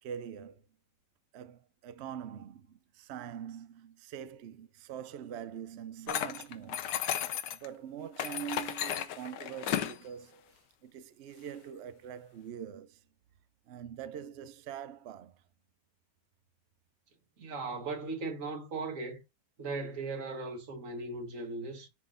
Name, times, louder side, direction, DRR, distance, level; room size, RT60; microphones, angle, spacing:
voice 1, 0.0-0.7 1.3-6.9 7.2-13.0 13.7-15.4, right 9 dB, 85° right, 0.6 m, -44 dB
sound 1, 6.1-7.7 8.2-10.0, left 10 dB, 90° left, 1.4 m, -34 dB
voice 2, 17.4-19.2 19.6-21.9, right 3 dB, 50° right, 1.6 m, -38 dB
10.5 x 3.7 x 2.5 m
omnidirectional pair, 1.8 m